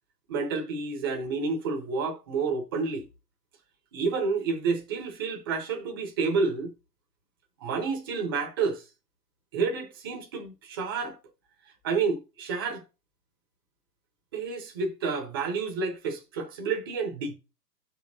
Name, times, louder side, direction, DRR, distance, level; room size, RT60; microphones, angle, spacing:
voice 1, 0.3-3.0 3.9-6.7 7.6-8.8 9.5-11.2 11.8-12.8 14.3-17.3, right 4 dB, 15° right, 0.6 m, -29 dB
16.0 x 5.3 x 2.6 m
hypercardioid pair, 140°, 49 cm